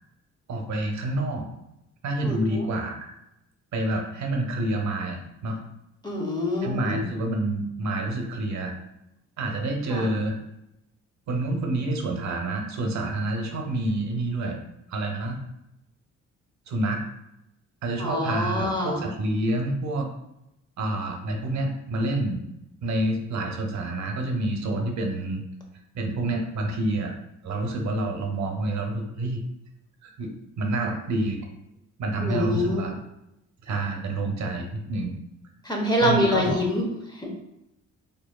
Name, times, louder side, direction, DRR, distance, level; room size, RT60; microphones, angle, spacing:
voice 1, 0.5-1.5 2.0-3.1 3.7-5.6 6.6-8.7 9.4-10.4 11.3-14.6 14.9-15.4 16.7-17.0 17.8-20.1 20.8-22.4 22.8-25.4 25.9-27.1 27.4-29.4 30.0-30.3 30.6-31.4 32.0-32.9 33.6-35.2 36.0-36.6, right 2 dB, 65° right, 3 dB, 0.7 m, -28 dB
voice 2, 2.2-2.6 6.0-7.0 9.9-10.0 18.0-19.0 32.2-32.9 35.6-37.3, left 1 dB, 15° left, -1 dB, 1.0 m, -26 dB
4.6 x 2.7 x 2.3 m, 0.86 s
cardioid pair, 90°, 30 cm